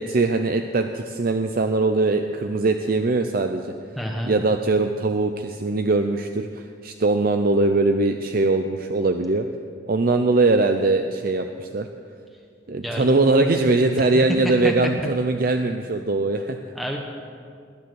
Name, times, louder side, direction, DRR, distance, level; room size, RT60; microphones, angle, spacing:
voice 1, 0.0-3.7 4.3-9.5 9.9-11.9 12.7-16.6, right 2 dB, 50° right, 6 dB, 0.6 m, -21 dB
voice 2, 4.0-4.3 12.8-13.1 14.4-14.7 16.7-17.0, equal, ahead, 1 dB, 1.1 m, -28 dB
19.0 x 10.5 x 6.4 m, 2.3 s
head